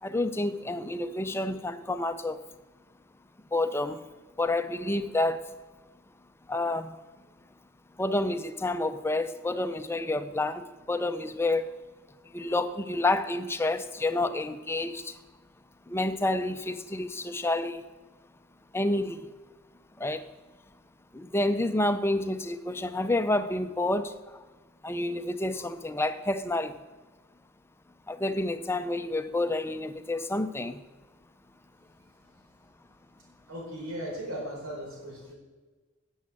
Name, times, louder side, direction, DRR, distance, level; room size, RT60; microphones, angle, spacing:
voice 1, 0.0-2.4 3.5-4.0 4.4-5.5 6.5-6.9 8.0-11.7 12.3-15.2 15.9-17.8 18.7-19.3 20.0-20.2 21.1-24.4 24.8-26.8 28.1-30.8, left 2 dB, 10° left, 10 dB, 0.5 m, -29 dB
voice 2, 33.5-35.3, equal, 85° right, -2 dB, 4.4 m, -37 dB
11.0 x 7.3 x 7.3 m, 1.3 s
head